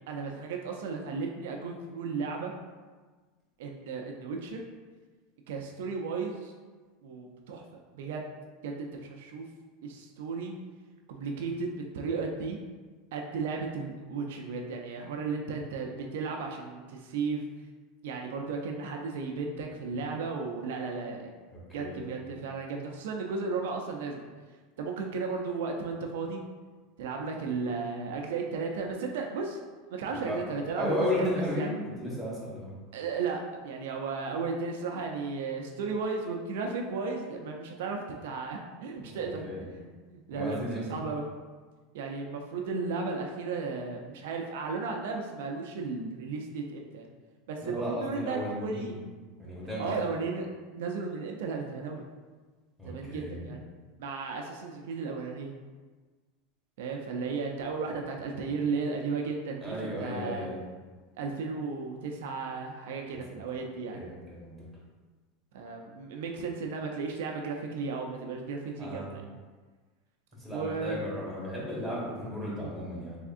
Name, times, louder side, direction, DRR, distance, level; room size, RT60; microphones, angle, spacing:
voice 1, 0.1-2.5 3.6-4.6 5.5-6.5 7.0-7.6 7.9-8.3 8.6-9.5 9.8-10.5 11.1-12.6 13.1-17.4 18.0-21.3 21.7-24.2 24.8-26.4 27.0-29.6 29.9-31.7 32.9-39.4 39.8-41.3 41.9-47.1 47.5-49.0 49.8-50.5 50.7-52.0 52.8-53.6 54.0-55.5 56.8-60.5 61.2-64.0 65.5-69.2 70.5-71.0 72.6-72.7, right 4 dB, 80° right, 2 dB, 0.4 m, -34 dB
voice 2, 21.5-22.2 30.1-30.4 30.8-32.7 38.9-39.6 40.3-41.0 47.6-49.0 49.4-50.1 52.8-53.5 59.6-60.6 63.1-63.4 63.9-64.5 68.8-69.1 70.4-73.2, left 1 dB, ahead, -8 dB, 1.5 m, -35 dB
3.5 x 3.4 x 2.4 m, 1.4 s
supercardioid pair, 125°, 0 cm